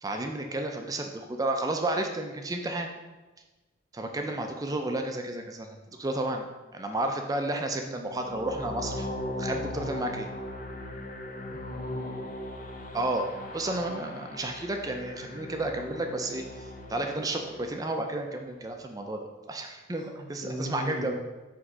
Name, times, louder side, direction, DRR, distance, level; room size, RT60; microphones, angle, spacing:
voice 1, 0.0-2.9 3.9-6.5 6.7-9.1 9.4-10.3 12.9-21.1, right 2 dB, 20° right, 4 dB, 0.4 m, -32 dB
sound 1, 8.0-18.1, left 1 dB, 45° left, 0.5 m, -38 dB
voice 2, 11.4-12.3 20.0-21.1, right 1 dB, 85° left, -3 dB, 1.7 m, -38 dB
4.9 x 3.6 x 5.3 m, 1.2 s
head